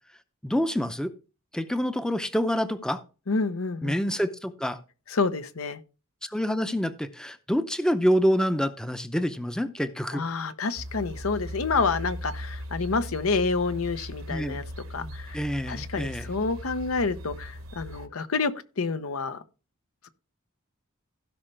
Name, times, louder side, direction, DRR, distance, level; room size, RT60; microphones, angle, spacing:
voice 1, 0.4-1.1 1.5-3.0 3.8-4.8 6.3-10.2 14.3-14.6 15.0-16.3, equal, 5° left, 0.6 m, -27 dB
voice 2, 3.3-4.0 5.1-5.8 10.1-14.6 14.9-15.4 15.7-19.4, left 4 dB, 80° left, 0.8 m, -28 dB
sound 1, 10.8-18.1, equal, 70° right, 1.0 m, -38 dB
16.0 x 5.5 x 3.3 m
head